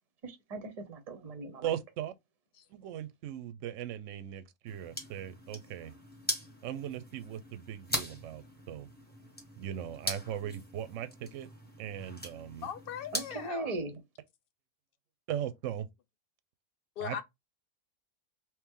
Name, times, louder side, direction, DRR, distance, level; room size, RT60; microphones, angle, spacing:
voice 1, 0.2-1.8 13.1-14.0, right 2 dB, 35° right, 0.7 m, -39 dB
voice 2, 1.6-2.1 2.7-5.9 6.6-8.9 9.6-11.5 11.8-12.7 15.3-15.9 17.0-17.2, right 10 dB, 70° right, 0.9 m, -38 dB
sound 1, 4.7-13.5, equal, 10° left, 1.1 m, -41 dB
voice 3, 12.6-13.7 17.0-17.2, left 9 dB, 65° left, 0.5 m, -39 dB
3.0 x 3.0 x 3.6 m
omnidirectional pair, 1.4 m